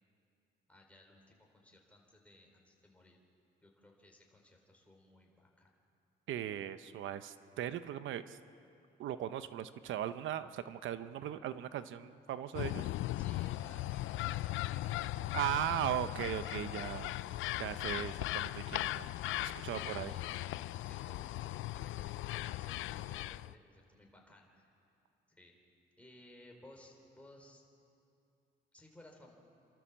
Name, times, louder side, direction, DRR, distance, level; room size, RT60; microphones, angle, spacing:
voice 1, 0.7-3.2 3.6-5.7 13.1-15.9 19.6-24.7 25.3-25.6 26.0-27.6 28.7-29.4, left 1 dB, 5° left, 0 dB, 4.2 m, -59 dB
voice 2, 6.3-8.4 9.0-12.9 15.3-17.1 17.6-19.1 19.4-20.1, right 11 dB, 80° right, 12 dB, 0.8 m, -38 dB
sound 1, 12.5-23.5, left 16 dB, 80° left, 0.4 m, -38 dB
28.5 x 13.0 x 7.4 m, 2.6 s
cardioid pair, 90°, 20 cm